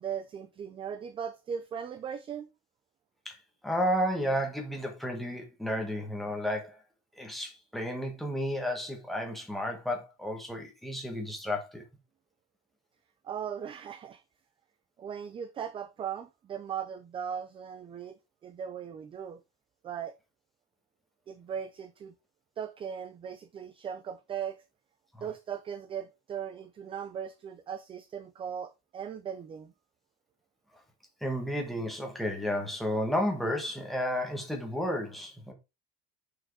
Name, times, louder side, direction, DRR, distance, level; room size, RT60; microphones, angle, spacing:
voice 1, 0.0-2.5 13.2-14.2 15.0-19.4 19.8-20.1 21.3-22.1 22.6-24.6 25.2-29.7, right 8 dB, 20° right, 0.4 m, -38 dB
voice 2, 3.6-6.8 7.2-11.8 25.1-25.3 31.2-35.5, equal, ahead, 1.8 m, -32 dB
6.6 x 6.3 x 4.8 m
cardioid pair, 180°, 29 cm